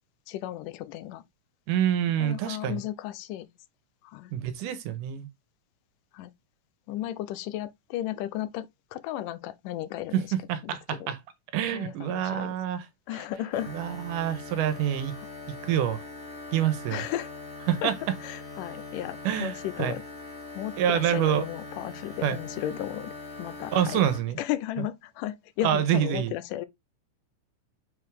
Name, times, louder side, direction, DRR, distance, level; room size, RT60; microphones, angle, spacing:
voice 1, 0.3-1.2 2.2-3.5 4.0-4.3 6.1-6.3 6.9-10.3 10.6-11.1 11.7-12.5 13.1-13.7 16.9-17.3 17.8-20.0 20.5-23.1 23.4-24.0 24.4-26.7, left 13 dB, 90° left, 2.3 m, -34 dB
voice 2, 1.7-2.8 4.3-5.3 10.1-10.2 10.5-11.2 11.5-12.8 13.7-15.2 15.6-16.0 16.5-17.0 17.7-17.9 19.2-19.5 19.8-20.0 20.8-21.5 22.2-22.4 23.7-24.4 25.6-26.3, right 10 dB, 85° right, 2.5 m, -26 dB
sound 1, 13.5-24.2, left 3 dB, 30° left, 1.4 m, -42 dB
6.4 x 4.7 x 3.5 m
omnidirectional pair, 3.7 m